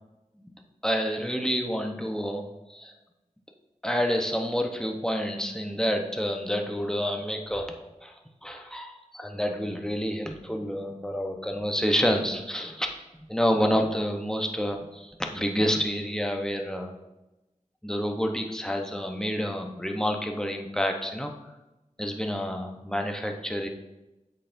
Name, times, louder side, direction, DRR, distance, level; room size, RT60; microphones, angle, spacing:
voice 1, 0.8-2.9 3.8-7.8 8.0-8.1 8.4-12.9 13.3-16.9 17.8-21.3 22.0-23.7, equal, 5° left, 2 dB, 1.0 m, -28 dB
8.2 x 8.0 x 2.7 m, 1.0 s
wide cardioid pair, 55°, 14 cm